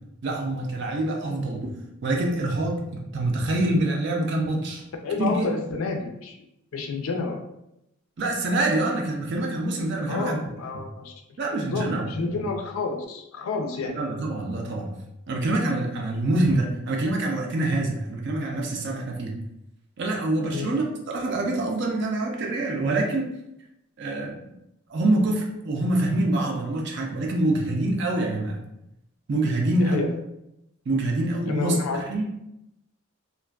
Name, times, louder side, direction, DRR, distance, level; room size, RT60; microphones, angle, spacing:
voice 1, 0.2-1.7 2.0-4.8 5.2-5.5 8.2-10.4 11.4-12.3 14.0-14.9 15.3-19.3 20.0-23.3 24.0-24.4 24.9-28.6 29.3-30.0 30.9-32.2, right 2 dB, 55° right, 0 dB, 0.4 m, -25 dB
voice 2, 5.0-6.4 6.7-7.4 10.1-11.1 11.6-14.0 20.5-20.8 29.8-30.1 31.5-32.0, left 4 dB, 75° left, 3 dB, 0.4 m, -29 dB
2.4 x 2.2 x 2.3 m, 0.84 s
head